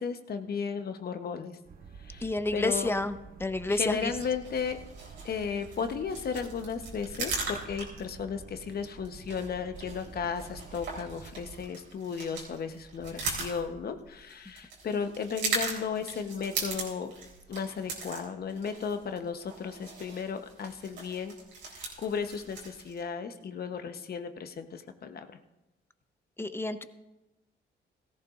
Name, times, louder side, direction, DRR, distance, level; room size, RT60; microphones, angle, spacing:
voice 1, 0.0-1.6 2.0-2.9 3.7-4.8 5.2-17.1 17.5-21.3 21.7-25.3, left 6 dB, 50° left, 8 dB, 1.0 m, -35 dB
sound 1, 1.6-11.6, right 5 dB, 45° right, 0.8 m, -49 dB
voice 2, 2.2-4.1 26.4-26.8, left 2 dB, 10° left, 10 dB, 0.8 m, -30 dB
sound 2, 3.9-23.0, right 4 dB, 90° right, 3.6 m, -40 dB
17.0 x 14.5 x 2.5 m, 1.0 s
cardioid pair, 90°, 20 cm